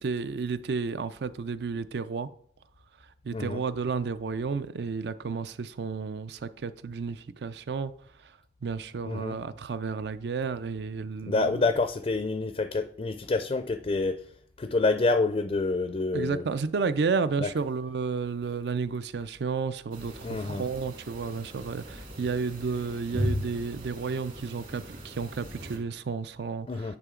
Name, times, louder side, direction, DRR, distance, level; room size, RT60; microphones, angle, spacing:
voice 1, 0.0-2.3 3.2-7.9 8.2-11.7 16.1-27.0, right 5 dB, 65° right, 0.4 m, -32 dB
voice 2, 9.1-9.4 11.3-14.2 14.6-16.4 17.4-17.5 20.2-20.6 26.7-26.9, left 3 dB, 35° left, 0.4 m, -27 dB
sound 1, 19.9-25.8, equal, 50° right, 2.1 m, -37 dB
9.6 x 5.0 x 3.7 m
head